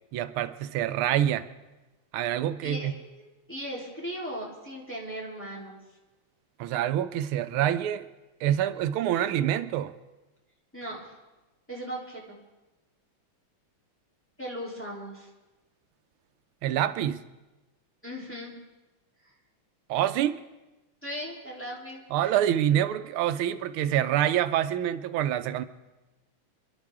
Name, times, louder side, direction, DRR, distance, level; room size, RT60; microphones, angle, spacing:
voice 1, 0.1-1.5 2.1-2.9 6.6-8.1 8.4-9.9 16.6-17.2 19.9-20.4 22.1-25.6, right 11 dB, 90° right, 11 dB, 1.5 m, -26 dB
voice 2, 2.6-5.8 10.7-11.1 11.7-12.4 14.4-15.3 18.0-18.5 19.2-19.3 21.0-22.4, equal, 5° left, -5 dB, 3.1 m, -38 dB
28.0 x 11.5 x 3.6 m, 1.1 s
omnidirectional pair, 2.3 m